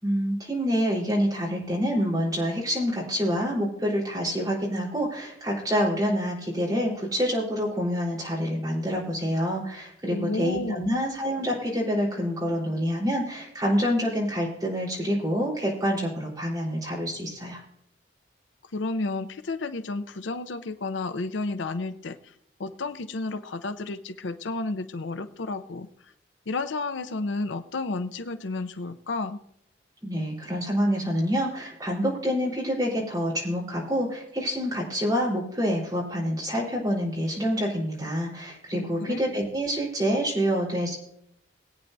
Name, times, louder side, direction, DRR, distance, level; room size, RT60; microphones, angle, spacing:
voice 1, 0.0-17.6 30.0-41.0, equal, 20° right, -4 dB, 3.8 m, -27 dB
voice 2, 10.1-10.9 18.7-22.3 22.6-25.9 26.5-29.4 38.7-39.2, left 3 dB, 85° left, 10 dB, 0.6 m, -31 dB
21.0 x 8.9 x 2.6 m, 0.75 s
head